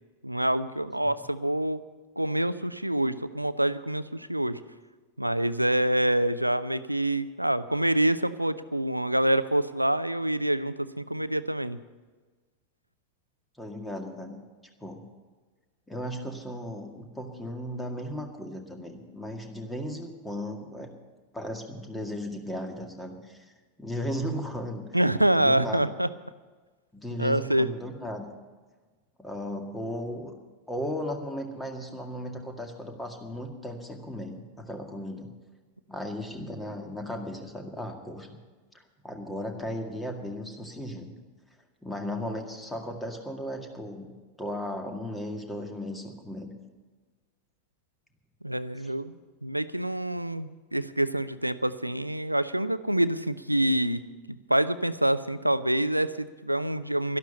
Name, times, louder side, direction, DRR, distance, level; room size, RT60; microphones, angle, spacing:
voice 1, 0.2-1.8 2.2-4.6 5.2-11.8 24.9-26.1 27.2-27.7 48.4-49.1 49.4-54.0 54.5-57.2, right 1 dB, 85° right, 14 dB, 0.6 m, -26 dB
voice 2, 13.6-14.4 14.8-15.0 15.9-20.9 21.3-23.5 23.8-24.8 25.4-25.9 26.9-28.3 29.2-30.3 30.7-35.3 35.9-38.4 39.0-41.1 41.8-46.5 48.8-48.9, equal, 5° left, 4 dB, 2.0 m, -36 dB
12.5 x 12.0 x 7.1 m, 1.3 s
figure-of-eight pair, 90°, 0 cm